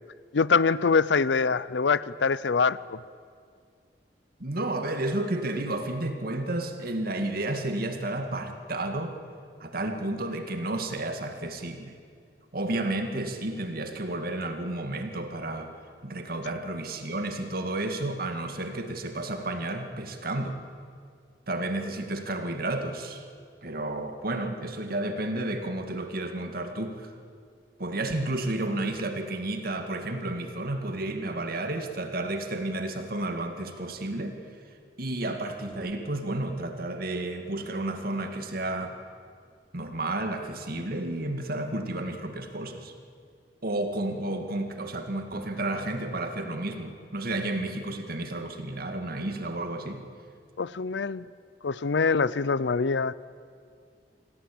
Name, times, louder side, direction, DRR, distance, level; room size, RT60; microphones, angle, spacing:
voice 1, 0.3-3.0 50.6-51.2 51.6-53.1, left 5 dB, 85° left, 19 dB, 0.6 m, -24 dB
voice 2, 4.4-9.2 9.6-12.0 12.5-15.7 16.0-20.6 21.5-23.3 23.6-27.1 27.8-34.4 35.0-39.0 39.7-42.9 43.6-50.0, right 2 dB, 60° right, 6 dB, 2.2 m, -31 dB
26.5 x 17.0 x 8.7 m, 2.2 s
head